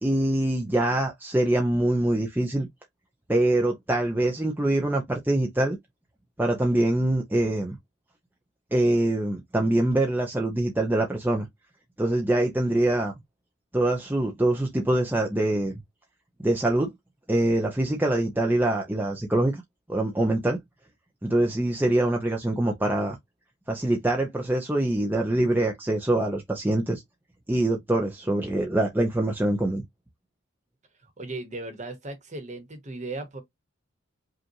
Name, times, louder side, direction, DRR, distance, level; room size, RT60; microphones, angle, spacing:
voice 1, 0.0-2.7 3.3-5.8 6.4-7.8 8.7-11.5 12.0-13.1 13.7-15.8 16.4-16.9 17.3-19.6 19.9-20.6 21.2-23.2 23.7-27.0 27.5-29.8, right 1 dB, 10° right, 0.6 m, -24 dB
voice 2, 31.2-33.4, right 2 dB, 35° right, 1.2 m, -36 dB
5.3 x 2.5 x 2.8 m
head